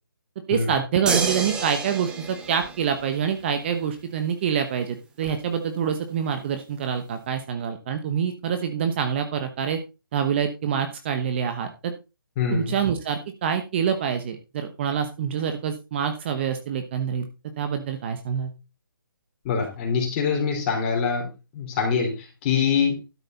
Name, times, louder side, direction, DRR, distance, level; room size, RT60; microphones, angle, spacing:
voice 1, 0.5-9.8 10.1-11.9 12.5-17.3 17.6-18.5, right 7 dB, 30° right, 7 dB, 1.1 m, -26 dB
sound 1, 1.1-3.5 5.3-5.4, right 4 dB, 5° right, 1.2 m, -30 dB
voice 2, 12.4-12.7 19.4-21.3 21.5-23.0, left 6 dB, 25° left, 1 dB, 4.3 m, -24 dB
12.5 x 6.5 x 4.0 m, 0.28 s
hypercardioid pair, 155°, 12 cm